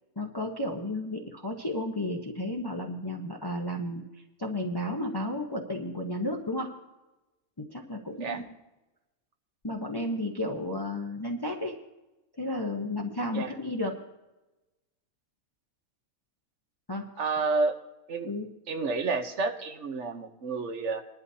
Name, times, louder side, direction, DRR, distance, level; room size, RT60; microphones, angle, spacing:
voice 1, 0.2-4.0 4.4-6.7 7.6-8.5 9.6-11.7 12.4-14.0 16.9-17.1 18.2-18.5, left 1 dB, 20° left, 1 dB, 0.8 m, -33 dB
voice 2, 17.2-17.7 18.1-18.3 18.7-21.0, right 4 dB, 55° right, 7 dB, 1.3 m, -30 dB
20.5 x 11.5 x 2.8 m, 1.0 s
omnidirectional pair, 1.5 m